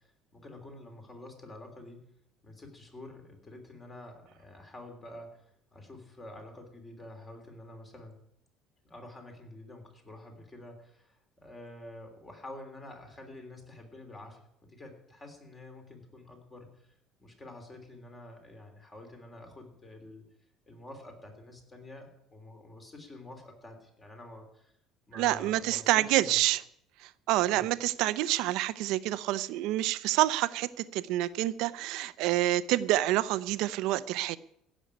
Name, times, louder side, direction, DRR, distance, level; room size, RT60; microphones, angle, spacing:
voice 1, 0.0-2.1 2.4-5.4 5.7-8.1 8.8-16.9 17.2-20.2 20.7-24.7 25.1-26.5 27.5-27.6, left 1 dB, 20° left, 4 dB, 3.3 m, -48 dB
voice 2, 25.1-26.6 27.0-34.4, right 15 dB, 70° right, 15 dB, 0.7 m, -28 dB
15.5 x 6.4 x 9.8 m, 0.72 s
cardioid pair, 150°, 0 cm